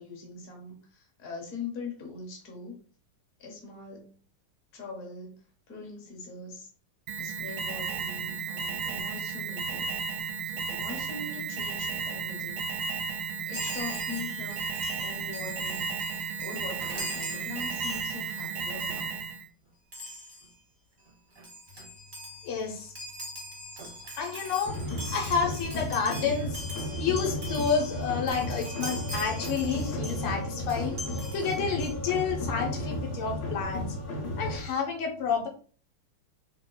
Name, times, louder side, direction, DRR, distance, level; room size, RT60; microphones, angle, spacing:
voice 1, 0.0-2.8 3.4-4.1 4.7-6.7 7.2-9.9 10.4-12.7 13.4-14.7 15.0-15.9 16.4-19.1, left 4 dB, 45° left, 0 dB, 1.4 m, -42 dB
Alarm, 7.1-19.5, right 5 dB, 75° right, 1.1 m, -34 dB
Chime, 13.5-18.5 18.8-19.0 19.9-20.5 21.1-21.2 21.3-30.3 30.7-31.9, equal, 45° right, 0.7 m, -42 dB
voice 2, 22.4-22.9 24.2-24.8 25.1-26.6 27.0-33.9 34.4-35.5, left 6 dB, 80° left, 2 dB, 1.6 m, -30 dB
sound 1, 24.7-34.6, left 1 dB, 60° left, 1.5 m, -34 dB
3.9 x 2.1 x 3.8 m, 0.40 s
omnidirectional pair, 2.4 m